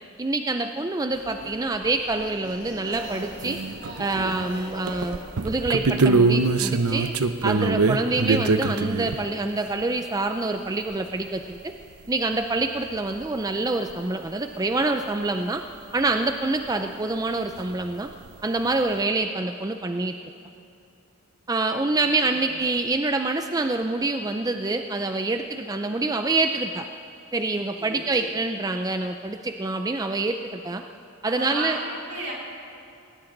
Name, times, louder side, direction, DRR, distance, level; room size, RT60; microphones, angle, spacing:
voice 1, 0.2-3.6 4.0-5.2 5.4-7.1 7.4-11.7 12.1-15.6 15.9-18.1 18.4-20.1 21.5-26.9 27.3-30.8 31.2-31.8, right 2 dB, 15° right, 6 dB, 0.4 m, -26 dB
sound 1, 1.1-6.2, equal, 45° right, 4.7 m, -41 dB
sound 2, 2.9-3.0 3.4-4.5 4.9-9.2 11.8-11.9 12.1-12.2 13.2-13.3 13.9-14.0 17.6-17.7 17.9-18.3, right 3 dB, 85° right, 0.7 m, -23 dB
voice 2, 22.0-22.5 27.5-28.3 31.2-32.3, right 2 dB, 70° right, -4 dB, 4.2 m, -35 dB
19.0 x 18.5 x 3.9 m, 2.7 s
head